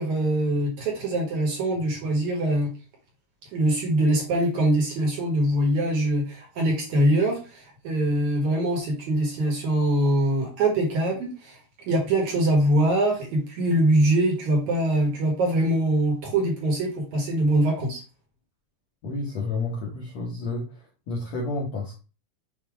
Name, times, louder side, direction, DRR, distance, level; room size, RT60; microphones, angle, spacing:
voice 1, 0.0-2.7 3.5-11.6 11.9-18.0, right 1 dB, 55° right, 0 dB, 2.5 m, -23 dB
voice 2, 19.0-22.1, left 3 dB, 65° left, -2 dB, 1.7 m, -31 dB
7.4 x 3.0 x 4.8 m, 0.32 s
omnidirectional pair, 4.6 m